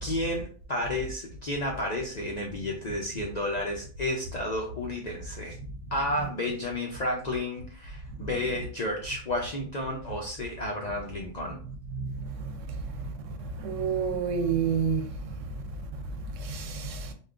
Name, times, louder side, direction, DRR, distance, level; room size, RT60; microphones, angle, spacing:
voice 1, 0.0-5.6 5.9-11.6, left 1 dB, 55° left, 0.5 m, -32 dB
voice 2, 11.9-12.3 13.6-15.1 16.5-17.0, right 6 dB, 85° right, 0.9 m, -28 dB
3.5 x 2.3 x 2.4 m
omnidirectional pair, 1.3 m